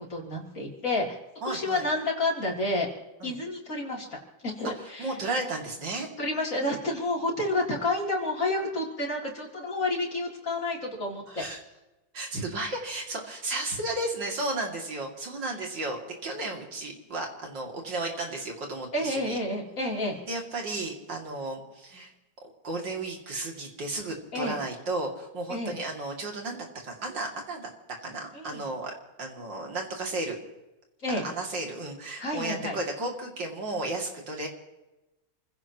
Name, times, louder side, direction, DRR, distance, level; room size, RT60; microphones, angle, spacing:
voice 1, 0.1-1.2 1.5-2.9 3.2-4.1 4.4-5.2 6.2-11.4 18.9-20.2 24.3-24.6 25.5-25.7 28.3-28.6 31.0-31.2 32.2-32.8, left 2 dB, 45° left, -2 dB, 3.8 m, -30 dB
voice 2, 1.4-1.8 3.2-3.4 5.0-6.1 11.3-11.6 12.1-19.4 20.3-22.1 22.6-27.7 28.0-30.4 31.1-34.5, right 2 dB, 70° right, 1 dB, 3.4 m, -34 dB
28.5 x 16.0 x 3.0 m, 1.0 s
omnidirectional pair, 2.0 m